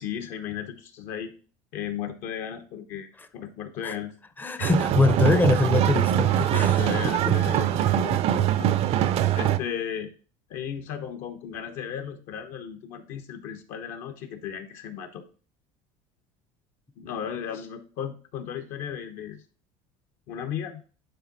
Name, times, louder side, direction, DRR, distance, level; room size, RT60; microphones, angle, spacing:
voice 1, 0.0-1.3 1.7-4.1 4.6-4.7 6.4-9.0 9.3-10.1 10.5-15.2 17.0-19.4 20.3-20.8, left 9 dB, 65° left, 1.0 m, -35 dB
voice 2, 4.4-7.4, left 3 dB, 15° left, 0.6 m, -24 dB
sound 1, 4.6-9.6, right 11 dB, 45° right, 0.5 m, -23 dB
9.2 x 3.7 x 4.0 m
cardioid pair, 140°, 14 cm